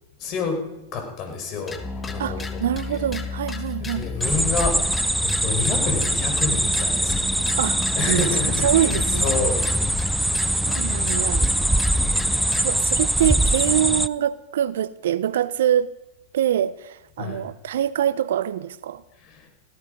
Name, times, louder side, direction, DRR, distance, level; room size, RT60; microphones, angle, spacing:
voice 1, 0.2-0.6 0.9-2.4 2.9-3.0 3.8-7.5 7.9-9.6 10.0-10.4 17.2-17.4 19.2-19.5, left 5 dB, 40° left, 5.3 m, -29 dB
sound 1, 1.7-12.7, left 4 dB, 15° left, 1.8 m, -32 dB
voice 2, 2.2-4.1 7.6-9.4 10.7-11.5 12.6-15.9 16.3-19.0, right 10 dB, 70° right, 0.7 m, -25 dB
sound 2, 4.2-14.1, right 1 dB, 5° right, 0.5 m, -23 dB
17.0 x 15.0 x 5.3 m
hypercardioid pair, 110°, 0 cm